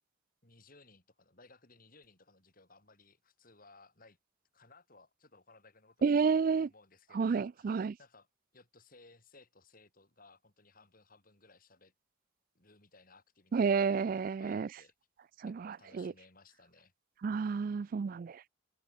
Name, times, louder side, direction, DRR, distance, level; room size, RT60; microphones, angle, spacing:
voice 1, 0.4-4.2 4.5-8.3 8.5-11.9 12.5-14.9 15.4-16.9, left 3 dB, 45° left, 6.5 m, -61 dB
voice 2, 6.0-6.7 7.1-7.9 13.5-14.7 15.4-16.1 17.2-18.4, right 5 dB, 45° right, 0.3 m, -30 dB
head